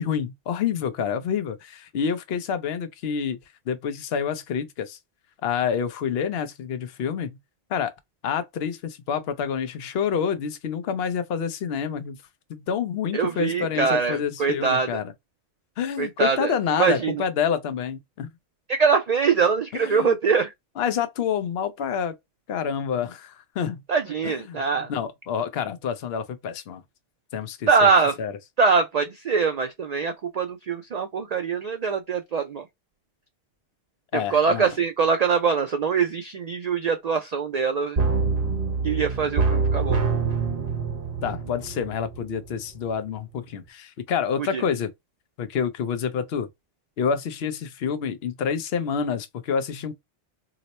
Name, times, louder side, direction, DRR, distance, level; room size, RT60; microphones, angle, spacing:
voice 1, 0.0-3.4 3.7-5.0 5.4-7.3 7.7-7.9 8.2-12.2 12.5-15.1 15.8-18.3 19.7-20.2 20.8-22.2 22.5-23.8 24.2-24.6 24.9-26.8 27.3-27.9 28.2-28.3 34.1-34.7 41.2-44.9 45.4-46.5 47.0-49.9, left 7 dB, 65° left, 0.9 m, -28 dB
voice 2, 13.1-15.0 16.0-17.2 18.7-20.5 23.9-24.9 27.7-28.2 28.6-32.6 34.1-38.0 38.8-40.0 44.4-44.6, right 5 dB, 60° right, 0.4 m, -23 dB
sound 1, 38.0-42.6 43.0-43.1, right 4 dB, 40° right, 0.8 m, -25 dB
2.9 x 2.1 x 4.0 m
omnidirectional pair, 1.2 m